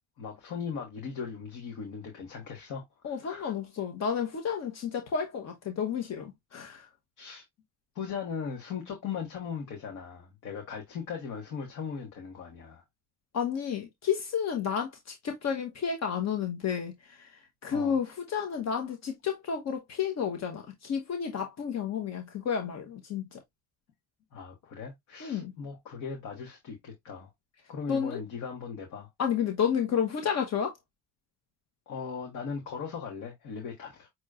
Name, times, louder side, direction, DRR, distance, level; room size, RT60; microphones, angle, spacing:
voice 1, 0.2-2.8 3.3-3.5 7.2-7.4 7.9-12.8 17.7-18.0 24.3-27.3 27.7-29.1 31.9-34.1, left 6 dB, 80° left, 1.5 m, -38 dB
voice 2, 3.0-6.9 13.3-23.4 25.2-25.5 27.9-28.2 29.2-30.7, left 7 dB, 60° left, 1.1 m, -31 dB
6.2 x 3.0 x 2.4 m
cardioid pair, 90°, 30 cm